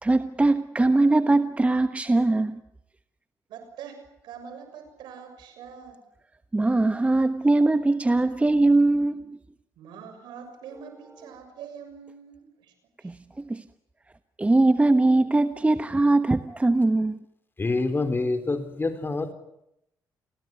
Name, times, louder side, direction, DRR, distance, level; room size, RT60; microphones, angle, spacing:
voice 1, 0.0-2.6 6.5-9.4 13.5-13.6 14.4-17.2, right 2 dB, 15° right, 1.2 m, -21 dB
voice 2, 3.5-6.0 9.8-12.7 13.0-13.1, right 7 dB, 85° right, 6.7 m, -44 dB
voice 3, 17.6-19.3, left 3 dB, 30° left, 4.1 m, -26 dB
28.5 x 20.0 x 9.6 m
cardioid pair, 75°, 7 cm